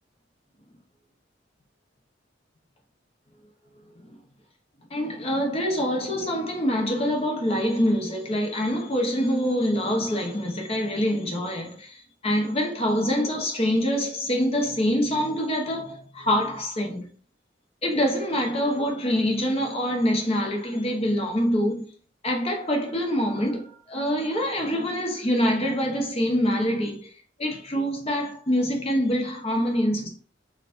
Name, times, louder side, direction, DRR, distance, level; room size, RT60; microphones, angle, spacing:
voice 1, 4.9-17.1 17.8-21.9 22.2-27.1 27.4-30.1, equal, 30° left, 0.8 m, -25 dB
4.3 x 2.4 x 2.5 m
head